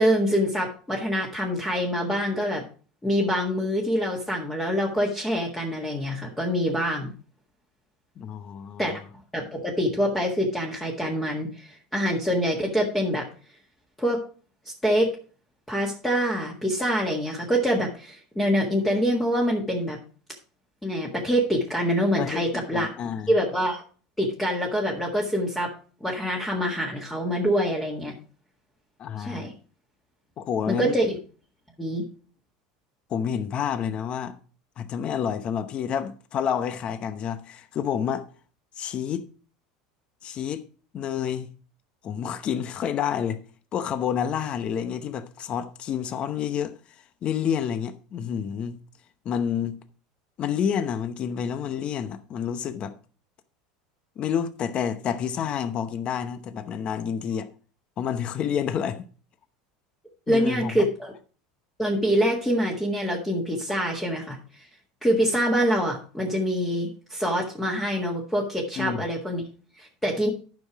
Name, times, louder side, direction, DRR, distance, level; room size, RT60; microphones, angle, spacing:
voice 1, 0.0-2.6 3.0-7.1 8.8-8.9 9.3-13.2 14.0-14.2 14.8-15.1 15.7-20.0 20.8-22.9 23.3-23.8 24.2-25.7 26.0-28.1 29.2-29.5 30.7-31.2 31.8-32.0 60.3-61.1 61.8-64.4 65.0-69.4 69.8-70.3, equal, 10° left, 1.7 m, -25 dB
voice 2, 8.2-9.0 22.2-23.3 29.0-29.5 30.4-31.0 33.1-34.4 34.8-38.2 38.8-39.3 40.2-40.6 40.9-41.5 42.0-43.4 43.7-48.8 49.2-49.8 50.4-52.9 54.2-57.5 58.0-59.0 60.3-60.9 68.8-69.1, left 8 dB, 40° left, 0.8 m, -29 dB
10.5 x 5.7 x 4.7 m
supercardioid pair, 120°, 3 cm